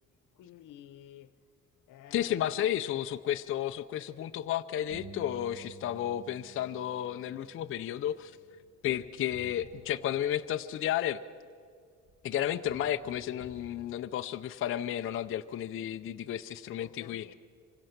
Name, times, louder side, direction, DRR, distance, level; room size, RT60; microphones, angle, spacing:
voice 1, 0.4-1.3 1.9-2.3 16.8-17.3, left 11 dB, 85° left, 1.0 m, -51 dB
voice 2, 2.1-8.3 8.8-11.2 12.2-17.3, left 11 dB, 45° left, 0.5 m, -32 dB
sound 1, 4.9-10.8 12.1-12.2 12.7-13.7, right 3 dB, 45° right, 3.0 m, -53 dB
26.0 x 24.5 x 5.8 m
cardioid pair, 170°, 31 cm